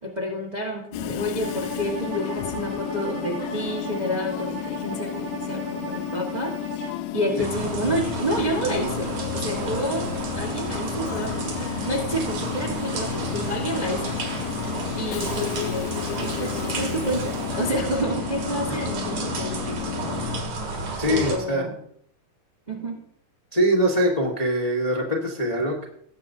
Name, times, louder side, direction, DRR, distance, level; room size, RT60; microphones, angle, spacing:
voice 1, 0.0-6.5 7.1-10.1 10.3-14.2 14.9-20.2 21.1-21.8 22.7-23.0, equal, 35° right, -1 dB, 0.7 m, -29 dB
Train / Subway metro underground, 0.9-20.4, left 15 dB, 80° left, 1.8 m, -32 dB
Bowed string instrument, 1.4-7.0, right 3 dB, 85° right, 4.7 m, -36 dB
sound 1, 7.4-21.4, right 2 dB, 70° right, 3.0 m, -31 dB
voice 2, 21.0-21.6 23.5-25.9, equal, 25° left, -3 dB, 0.7 m, -23 dB
19.0 x 7.7 x 2.7 m, 0.66 s
omnidirectional pair, 3.3 m